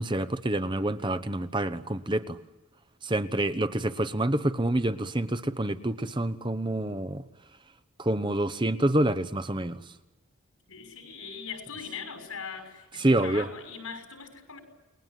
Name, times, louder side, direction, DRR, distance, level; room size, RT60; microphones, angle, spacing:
voice 1, 0.0-2.4 3.0-7.2 8.0-9.8 13.0-13.5, right 1 dB, 20° right, 11 dB, 0.9 m, -27 dB
voice 2, 10.7-14.6, left 6 dB, 85° left, 7 dB, 5.8 m, -41 dB
29.5 x 21.0 x 9.2 m, 1.1 s
head